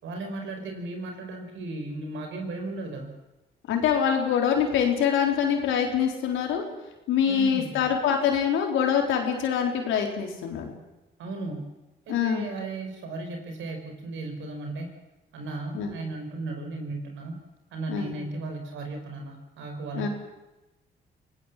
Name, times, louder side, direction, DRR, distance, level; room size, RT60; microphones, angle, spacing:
voice 1, 0.0-3.1 7.3-7.8 11.2-11.7 12.1-14.9 15.3-17.4 17.7-20.1, right 2 dB, 85° right, 5 dB, 5.2 m, -35 dB
voice 2, 3.7-6.6 7.1-10.7 12.1-12.5 15.7-16.0 17.9-18.1 19.9-20.1, left 8 dB, 90° left, 2 dB, 4.2 m, -24 dB
26.5 x 17.5 x 7.6 m, 1.0 s
cardioid pair, 70°, 19 cm